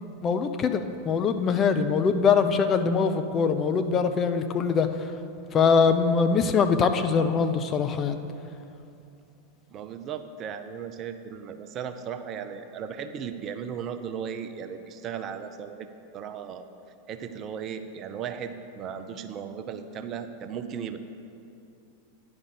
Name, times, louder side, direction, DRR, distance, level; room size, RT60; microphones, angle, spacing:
voice 1, 0.2-4.9 5.5-8.2, left 5 dB, 25° left, 8 dB, 0.4 m, -23 dB
voice 2, 9.7-16.7 17.1-21.0, right 7 dB, 30° right, 9 dB, 0.5 m, -36 dB
9.8 x 5.1 x 6.7 m, 2.7 s
figure-of-eight pair, 90°, 0 cm